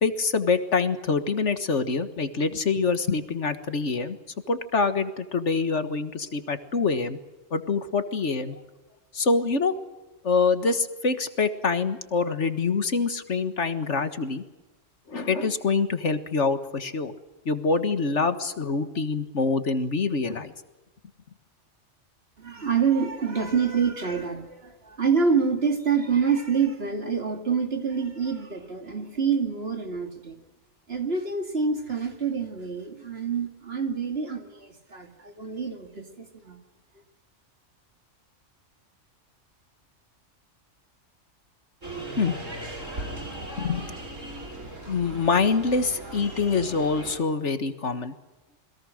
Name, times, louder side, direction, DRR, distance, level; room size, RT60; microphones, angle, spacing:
voice 1, 0.0-4.2 4.5-7.2 7.5-8.6 9.1-9.7 10.2-14.4 15.1-17.1 17.5-20.5 42.2-42.4 43.6-43.9 44.9-48.1, left 4 dB, 65° left, 10 dB, 1.9 m, -25 dB
voice 2, 22.4-30.4 30.9-36.6, right 6 dB, 50° right, 5 dB, 2.7 m, -27 dB
sound 1, 41.8-47.2, right 1 dB, 80° right, 5.8 m, -38 dB
28.5 x 21.5 x 6.5 m, 1.1 s
omnidirectional pair, 1.3 m